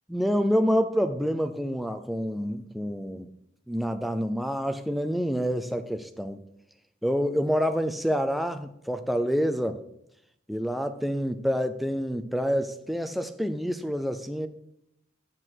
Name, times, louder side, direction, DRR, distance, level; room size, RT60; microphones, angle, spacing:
voice 1, 0.1-3.3 3.7-6.4 7.0-9.8 10.5-14.5, equal, ahead, 0.3 m, -27 dB
7.6 x 6.3 x 4.6 m
head